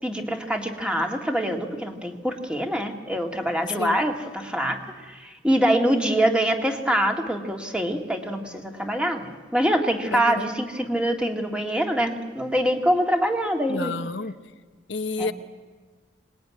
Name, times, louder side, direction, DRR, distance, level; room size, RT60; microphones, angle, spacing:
voice 1, 0.0-13.9 15.2-15.3, equal, 5° right, 3 dB, 2.0 m, -24 dB
voice 2, 3.6-4.0 10.1-10.5 13.7-14.4 14.9-15.3, left 4 dB, 70° left, 9 dB, 1.0 m, -30 dB
26.0 x 20.5 x 9.6 m, 1.4 s
head